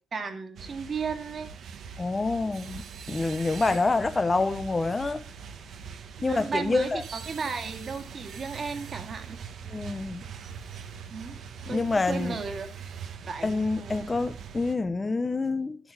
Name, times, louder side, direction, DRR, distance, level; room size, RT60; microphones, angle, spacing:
voice 1, 0.1-1.5 1.8-2.0 3.7-3.8 6.2-9.4 11.1-11.4 11.7-12.7 13.3-14.1, right 5 dB, 45° right, 2.0 m, -34 dB
sound 1, 0.6-14.8, right 6 dB, 70° right, 1.2 m, -42 dB
voice 2, 2.0-5.2 6.2-7.0 9.7-10.2 11.6-12.4 13.4-15.8, left 3 dB, 25° left, 0.8 m, -27 dB
12.0 x 8.3 x 4.9 m
cardioid pair, 100°, 0 cm